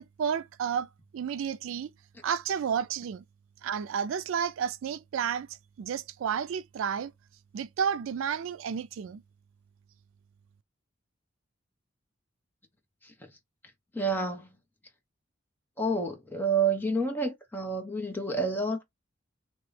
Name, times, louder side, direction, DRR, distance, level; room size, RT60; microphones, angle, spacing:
voice 1, 0.0-1.9 2.2-3.2 3.6-5.5 5.8-7.1 7.5-9.2, right 7 dB, 75° right, 0.3 m, -31 dB
voice 2, 13.9-14.6 15.8-18.8, right 3 dB, 10° left, 0.9 m, -29 dB
3.0 x 2.9 x 3.2 m
head